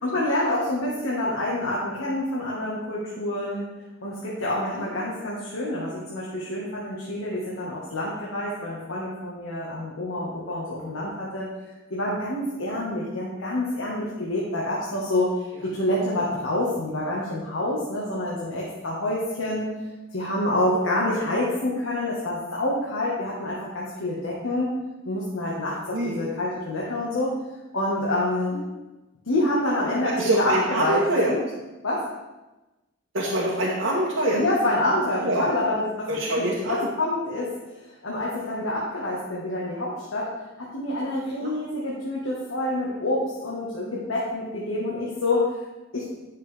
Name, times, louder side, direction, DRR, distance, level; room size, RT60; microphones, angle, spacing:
voice 1, 0.0-3.7 4.0-11.5 11.9-19.7 20.1-24.7 25.0-27.4 27.7-28.6 29.2-31.4 31.8-32.1 34.3-40.3 40.6-45.6 45.9-46.1, left 1 dB, 90° left, -5 dB, 1.6 m, -27 dB
voice 2, 25.9-26.2 28.5-28.6 30.0-31.3 33.1-34.4 35.2-35.5 36.1-36.9 41.4-41.5, right 1 dB, 85° right, -6 dB, 1.3 m, -25 dB
10.5 x 6.6 x 3.5 m, 1.1 s
head